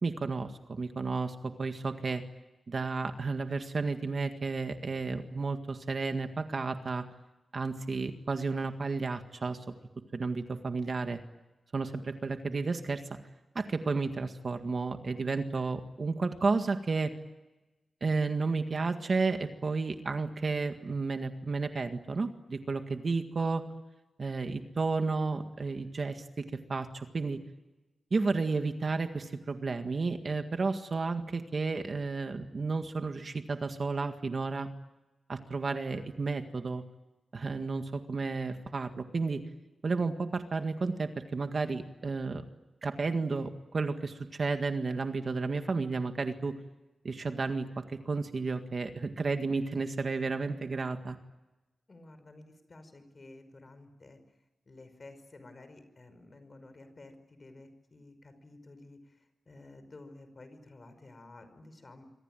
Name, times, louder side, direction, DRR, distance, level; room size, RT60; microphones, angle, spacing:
voice 1, 0.0-2.2 2.7-7.0 7.5-9.6 10.1-11.2 11.7-13.0 13.6-17.1 18.0-23.7 24.2-26.4 26.7-27.4 28.1-34.7 35.3-36.8 37.3-39.4 39.8-42.4 42.8-46.5 47.0-51.2, right 4 dB, 45° right, 7 dB, 1.8 m, -32 dB
voice 2, 51.9-54.2 54.7-62.0, left 2 dB, 35° left, 9 dB, 5.4 m, -52 dB
27.0 x 24.0 x 9.1 m, 1.1 s
wide cardioid pair, 140°, 0 cm